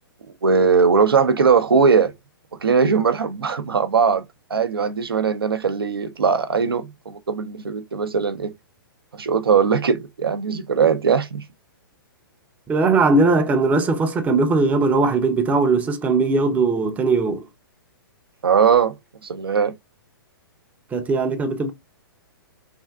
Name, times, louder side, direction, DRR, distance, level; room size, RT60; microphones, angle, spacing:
voice 1, 0.4-2.1 2.6-4.2 4.5-8.5 9.1-11.4 18.4-19.0 19.2-19.7, right 6 dB, 85° right, 0.5 m, -19 dB
voice 2, 12.7-17.5 20.9-21.7, right 3 dB, 10° right, 0.4 m, -19 dB
3.3 x 2.5 x 2.2 m
hypercardioid pair, 120°, 12 cm